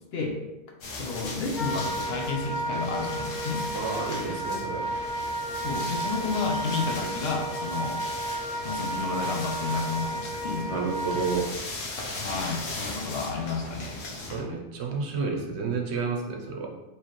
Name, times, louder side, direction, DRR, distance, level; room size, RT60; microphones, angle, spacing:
sound 1, 0.8-14.4, left 2 dB, 85° left, 1.2 m, -38 dB
voice 1, 1.0-3.6 5.6-8.0 8.6-10.8 12.2-14.0, left 4 dB, 60° left, 2 dB, 0.8 m, -31 dB
Wind instrument woodwind instrument, 1.5-11.4, right 2 dB, ahead, 1.2 m, -33 dB
voice 2, 3.7-4.9 10.7-11.5 14.2-16.7, right 4 dB, 65° right, 1 dB, 0.9 m, -30 dB
4.6 x 3.1 x 3.0 m, 1.0 s
omnidirectional pair, 1.3 m